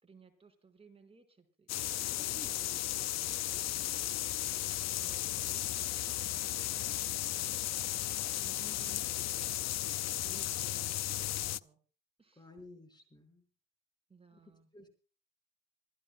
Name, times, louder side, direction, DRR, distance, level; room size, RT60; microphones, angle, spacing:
voice 1, 0.0-4.2 4.7-5.3 5.6-7.9 8.4-11.8 12.2-12.5 14.1-14.9, right 5 dB, 20° right, 4 dB, 4.9 m, -62 dB
sound 1, 1.7-11.6, left 14 dB, 60° left, 0.6 m, -35 dB
voice 2, 2.2-3.0 5.0-5.7 10.2-11.1 12.4-13.4 14.3-14.9, left 1 dB, 15° left, 7 dB, 5.0 m, -55 dB
27.0 x 15.0 x 2.2 m, 0.36 s
cardioid pair, 105°, 30 cm